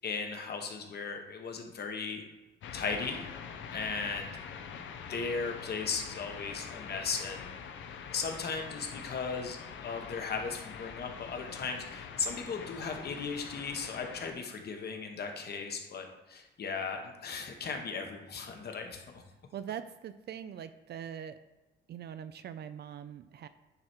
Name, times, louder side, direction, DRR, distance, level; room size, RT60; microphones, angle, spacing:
voice 1, 0.0-2.2 2.7-3.3 3.7-4.4 5.1-7.5 8.1-19.2, left 5 dB, 55° left, 4 dB, 1.2 m, -37 dB
sound 1, 2.6-14.3, left 7 dB, 70° left, 0.7 m, -44 dB
voice 2, 19.5-21.4 21.9-23.5, right 9 dB, 55° right, 11 dB, 0.4 m, -42 dB
9.6 x 3.3 x 4.4 m, 1.1 s
cardioid pair, 90°, 20 cm